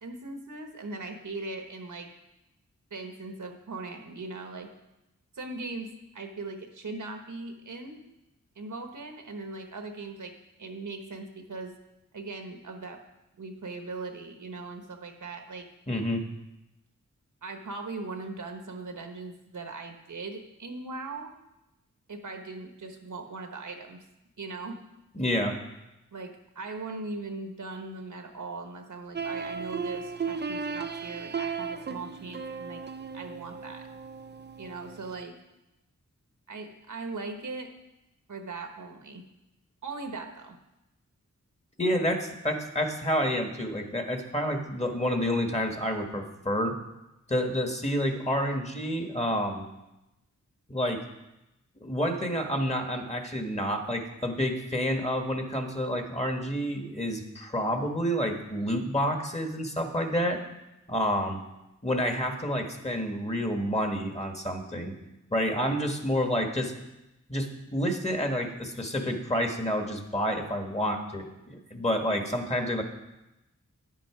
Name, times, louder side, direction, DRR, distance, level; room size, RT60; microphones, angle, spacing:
voice 1, 0.0-2.1 2.9-4.7 5.3-8.0 8.6-10.3 10.6-11.7 12.1-13.0 13.4-15.7 17.4-21.3 22.1-24.0 24.4-24.8 26.1-32.8 33.1-33.9 34.6-35.3 36.5-37.7 38.3-39.2 39.8-40.6, right 3 dB, 75° right, 5 dB, 1.2 m, -39 dB
voice 2, 15.9-16.2 25.1-25.6 41.8-46.8 47.3-49.6 50.7-51.0 51.8-60.4 60.9-61.4 61.8-64.9 65.3-66.7 67.3-72.8, equal, 20° left, 4 dB, 1.4 m, -29 dB
sound 1, 29.1-35.2, right 5 dB, 35° right, 0.5 m, -36 dB
9.9 x 7.7 x 4.9 m, 0.93 s
wide cardioid pair, 65°, 31 cm